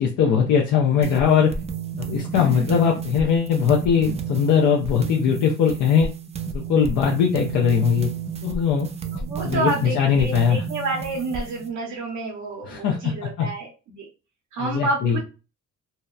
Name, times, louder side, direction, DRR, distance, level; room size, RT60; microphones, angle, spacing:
voice 1, 0.0-1.5 2.0-6.1 6.5-8.1 8.4-8.9 9.4-10.6 12.7-13.5 14.6-15.2, left 7 dB, 75° left, -1 dB, 0.5 m, -20 dB
sound 1, 1.0-11.7, right 6 dB, 20° right, 0.3 m, -32 dB
voice 2, 2.4-3.0 9.1-14.1 14.5-15.2, right 2 dB, 80° right, -2 dB, 0.7 m, -29 dB
2.7 x 2.0 x 2.3 m, 0.32 s
cardioid pair, 90°, 30 cm